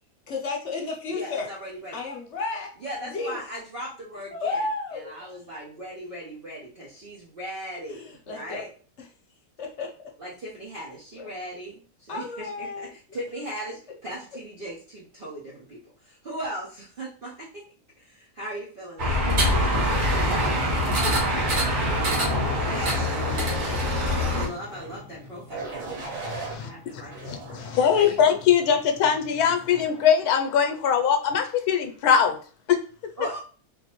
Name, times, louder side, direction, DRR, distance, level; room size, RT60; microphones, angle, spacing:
voice 1, 0.3-1.5 1.9-2.7 3.1-3.4 4.3-5.1 7.9-8.6 9.6-9.9 12.1-12.9, left 3 dB, 55° left, 0 dB, 1.0 m, -32 dB
voice 2, 1.1-2.0 2.8-8.7 10.2-17.6 18.0-19.6 22.7-23.1 23.6-26.1 26.6-27.4 27.9-28.2 33.2-33.4, equal, 45° right, -6 dB, 0.9 m, -38 dB
sound 1, 19.0-24.5, equal, 80° right, 1.7 m, -24 dB
sound 2, 21.2-29.9, left 3 dB, 5° left, 1.1 m, -40 dB
sound 3, 24.6-24.9 25.5-26.6 27.1-28.1 28.7-29.1, right 4 dB, 60° right, 1.5 m, -38 dB
voice 3, 26.2-27.0 27.3-32.4, left 7 dB, 85° left, 5 dB, 1.1 m, -22 dB
3.6 x 2.6 x 2.9 m, 0.40 s
omnidirectional pair, 1.6 m